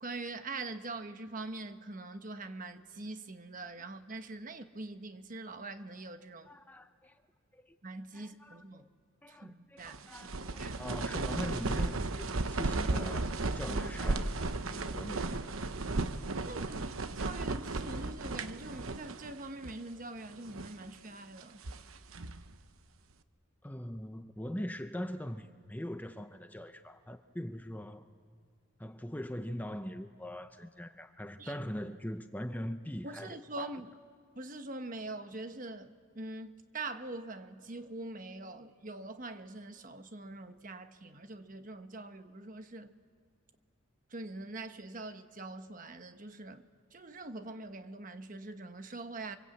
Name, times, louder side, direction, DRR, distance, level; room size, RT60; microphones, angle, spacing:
voice 1, 0.0-6.5 7.8-8.9 9.3-10.1 10.4-10.7 16.3-16.8 17.1-21.6 31.4-31.6 33.0-33.9 34.4-42.9 44.1-49.4, right 2 dB, 40° right, 1.1 m, -43 dB
voice 2, 6.5-7.2 7.5-7.8 8.1-8.9 9.2-14.4 14.7-15.4 23.6-28.0 28.8-33.8, equal, 10° left, 0.7 m, -42 dB
sound 1, 9.8-19.4 19.6-19.7 20.3-20.8 21.4-22.5, right 3 dB, 85° right, 1.0 m, -35 dB
29.0 x 24.0 x 8.4 m
head